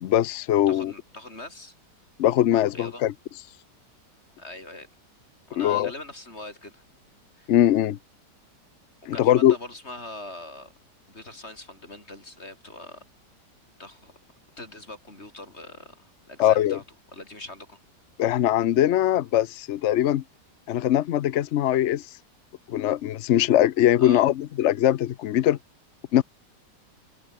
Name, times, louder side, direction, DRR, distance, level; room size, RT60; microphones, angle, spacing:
voice 1, 0.0-0.9 2.2-3.1 5.6-5.9 7.5-8.0 9.1-9.5 16.4-16.8 18.2-20.2 20.7-22.1 22.7-25.6 26.1-26.2, left 12 dB, 70° left, 0.6 m, -21 dB
voice 2, 0.7-1.7 2.7-3.0 4.4-4.9 5.5-6.8 7.4-7.6 9.1-10.7 11.1-13.0 13.8-14.1 14.6-16.8 17.1-17.8 24.0-24.3, left 2 dB, 35° left, 5.8 m, -41 dB
omnidirectional pair, 1.9 m